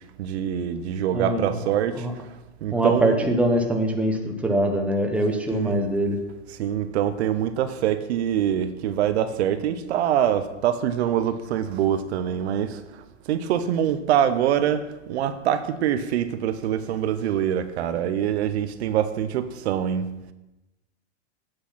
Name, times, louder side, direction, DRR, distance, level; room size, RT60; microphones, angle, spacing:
voice 1, 0.2-2.1 2.6-3.3 5.3-5.8 6.5-20.1, right 10 dB, 60° right, 0.8 m, -25 dB
voice 2, 1.1-1.5 2.0-2.1 2.7-6.2, right 1 dB, 5° right, 0.9 m, -23 dB
8.9 x 6.4 x 5.7 m
hypercardioid pair, 135°, 36 cm